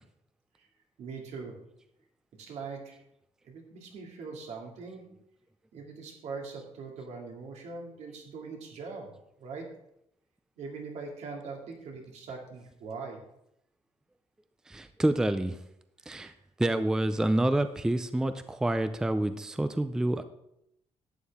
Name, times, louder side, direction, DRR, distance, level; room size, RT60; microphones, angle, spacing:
voice 1, 1.0-1.6 2.4-3.0 3.4-5.0 5.7-9.1 9.4-9.7 10.6-13.2, right 4 dB, 80° right, 1 dB, 2.3 m, -41 dB
voice 2, 14.7-15.6 16.1-16.3 16.6-20.2, right 1 dB, 5° right, 10 dB, 0.4 m, -28 dB
11.5 x 8.5 x 3.5 m, 0.79 s
cardioid pair, 165°, 11 cm